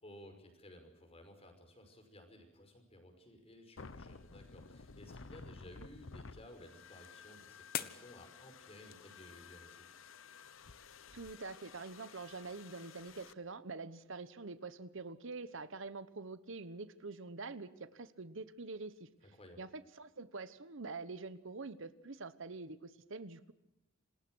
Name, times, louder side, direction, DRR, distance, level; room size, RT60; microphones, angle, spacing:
voice 1, 0.0-10.0 19.2-19.6, left 1 dB, 30° left, 6 dB, 5.7 m, -56 dB
sound 1, 3.8-13.3, left 4 dB, 70° left, 0.9 m, -54 dB
sound 2, 4.8-9.9, left 9 dB, 50° left, 1.3 m, -49 dB
voice 2, 11.1-19.1 19.6-23.5, right 3 dB, 65° right, 14 dB, 1.1 m, -46 dB
27.5 x 19.5 x 6.3 m, 0.90 s
head